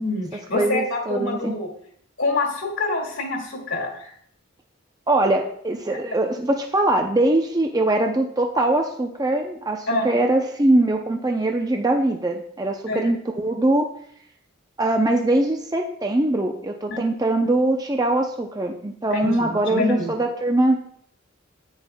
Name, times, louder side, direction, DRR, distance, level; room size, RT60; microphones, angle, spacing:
voice 1, 0.0-1.7 2.2-4.1 9.9-10.2 12.9-13.1 16.9-17.0 19.1-20.1, left 2 dB, 80° left, -2 dB, 2.2 m, -26 dB
voice 2, 0.5-1.6 5.1-13.9 14.8-20.9, right 2 dB, 20° right, 2 dB, 0.6 m, -22 dB
10.5 x 8.9 x 2.3 m, 0.64 s
head